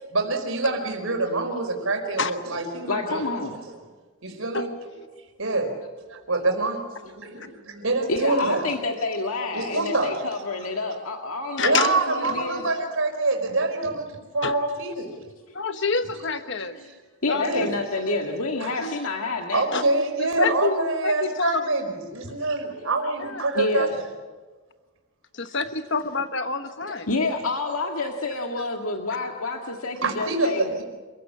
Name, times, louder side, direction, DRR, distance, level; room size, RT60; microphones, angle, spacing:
voice 1, 0.1-3.2 3.5-3.6 4.2-4.9 5.4-5.8 6.1-8.7 9.5-10.2 11.6-13.9 14.3-15.1 16.5-16.9 17.4-17.7 18.6-18.9 19.5-21.9 22.3-24.1 30.0-30.8, right 2 dB, 65° right, 3 dB, 4.8 m, -26 dB
voice 2, 2.8-3.6 7.4-7.5 8.1-12.8 15.5-15.6 17.2-19.7 23.5-23.9 26.9-30.8, left 3 dB, 75° left, 2 dB, 2.0 m, -28 dB
voice 3, 11.6-11.9 14.4-14.5 15.5-16.8 17.3-17.7 18.8-19.0 19.7-19.8 20.2-21.6 23.2-23.4 25.5-25.6 25.9-27.1, left 4 dB, 55° left, 9 dB, 1.1 m, -27 dB
28.0 x 16.0 x 8.6 m, 1.4 s
head